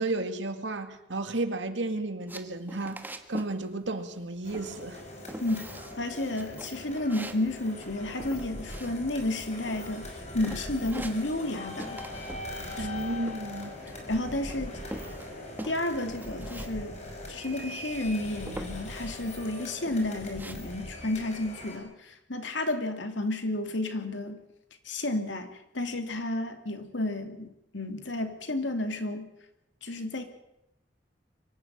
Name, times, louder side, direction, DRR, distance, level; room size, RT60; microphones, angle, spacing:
voice 1, 0.0-5.0 12.8-13.7, right 2 dB, 75° right, 2.2 m, -33 dB
sound 1, 2.3-3.6 3.8-4.3 4.5-5.0 5.3-6.0 6.3-9.4 9.7-10.2 10.4-11.5 11.8-12.4 12.7-14.2 14.5-16.7 17.0-17.1 17.4-18.0 18.5-19.2 19.6-20.5, right 1 dB, 10° right, 1.5 m, -43 dB
sound 2, 4.4-21.8, left 1 dB, 40° left, 5.4 m, -41 dB
voice 2, 6.0-12.0 12.8-12.9 14.1-14.8 15.6-17.0 17.3-24.4 24.8-29.3 29.8-30.2, left 1 dB, 75° left, 2.6 m, -32 dB
24.0 x 13.0 x 9.0 m
head